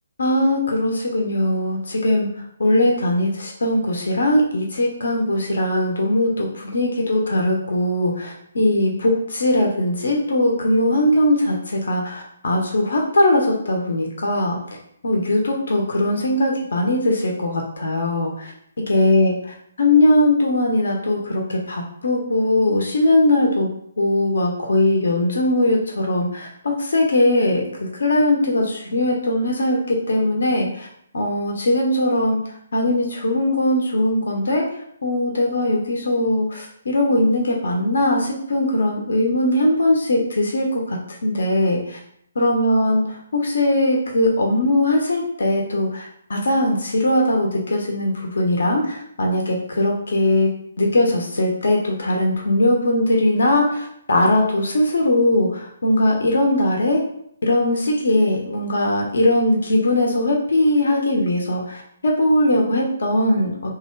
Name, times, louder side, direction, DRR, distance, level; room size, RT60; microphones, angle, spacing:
voice 1, 0.2-2.3 2.6-14.6 15.0-18.5 18.9-19.3 19.8-23.7 24.0-30.9 31.1-32.4 32.7-34.6 35.0-42.0 42.4-43.0 43.3-50.5 50.8-57.0 57.4-63.8, left 1 dB, 70° left, 0 dB, 0.9 m, -20 dB
3.4 x 2.7 x 4.5 m, 0.69 s
hypercardioid pair, 175°, 0 cm